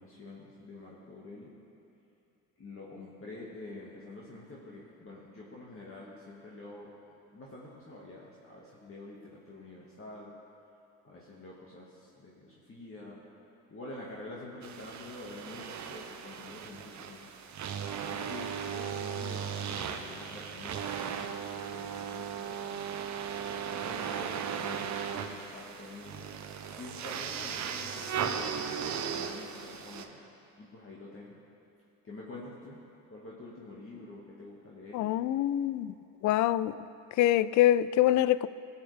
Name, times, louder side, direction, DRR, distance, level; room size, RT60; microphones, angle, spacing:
voice 1, 0.0-1.5 2.6-6.9 7.3-10.3 11.0-13.2 13.7-17.3 18.1-22.8 23.5-26.3 26.8-30.2 30.6-31.4 32.0-32.8 33.1-35.2, left 2 dB, 35° left, 2.0 m, -47 dB
sound 1, 14.6-30.1, right 7 dB, 45° right, 0.9 m, -37 dB
voice 2, 34.9-35.9 36.2-36.7 37.2-38.5, left 13 dB, 50° left, 0.4 m, -25 dB
18.5 x 7.3 x 3.5 m
hypercardioid pair, 65°, 39 cm